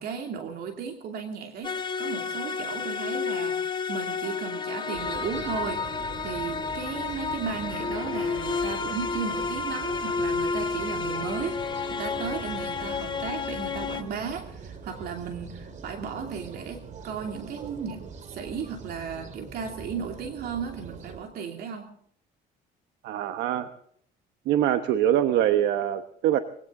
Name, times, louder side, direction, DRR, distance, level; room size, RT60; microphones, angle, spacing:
voice 1, 0.0-11.6 11.9-21.9, right 6 dB, 65° right, 4 dB, 2.7 m, -35 dB
sound 1, 1.6-14.0, left 5 dB, 30° left, 2.1 m, -31 dB
sound 2, 4.9-21.2, right 5 dB, 45° right, 2.4 m, -42 dB
voice 2, 23.0-23.7 24.5-26.4, right 11 dB, 85° right, 9 dB, 1.2 m, -24 dB
22.5 x 17.0 x 3.8 m, 0.64 s
cardioid pair, 110°, 17 cm